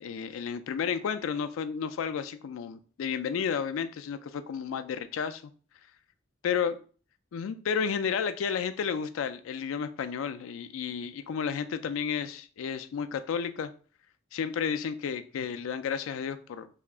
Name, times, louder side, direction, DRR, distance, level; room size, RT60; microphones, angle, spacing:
voice 1, 0.0-5.4 6.4-6.8 7.3-13.7 14.3-16.7, left 7 dB, 80° left, 0.3 m, -32 dB
2.8 x 2.4 x 3.4 m
head